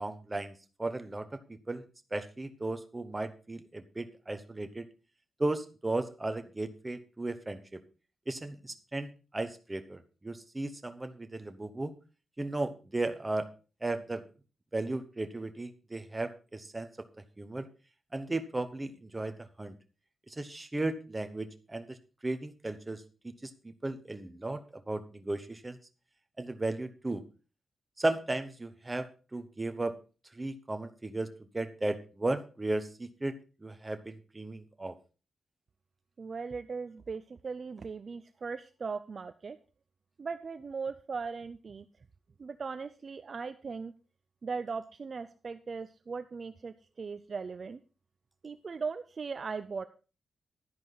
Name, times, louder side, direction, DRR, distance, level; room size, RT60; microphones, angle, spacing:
voice 1, 0.0-1.8 2.1-4.9 5.4-7.8 8.3-11.9 12.4-13.5 13.8-14.2 14.7-16.9 17.4-17.7 18.1-19.8 20.3-22.0 22.2-25.8 26.4-27.2 28.0-30.0 30.3-33.3 33.6-35.0, right 2 dB, 15° right, 9 dB, 0.9 m, -35 dB
voice 2, 36.2-39.6 40.2-41.8 42.4-43.9 44.4-47.8 48.4-49.9, right 5 dB, 35° right, 10 dB, 0.5 m, -38 dB
11.5 x 10.5 x 4.0 m, 0.34 s
wide cardioid pair, 180°, 0 cm